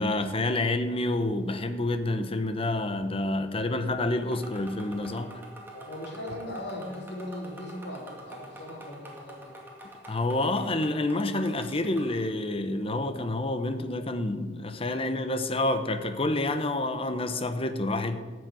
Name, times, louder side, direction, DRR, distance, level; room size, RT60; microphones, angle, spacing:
voice 1, 0.0-5.3 10.1-18.2, left 2 dB, 30° left, 9 dB, 0.9 m, -28 dB
sound 1, 4.3-12.2, right 1 dB, 10° right, 2.2 m, -47 dB
voice 2, 5.7-9.5, left 1 dB, 65° left, -1 dB, 3.1 m, -39 dB
13.0 x 6.4 x 9.1 m, 1.5 s
head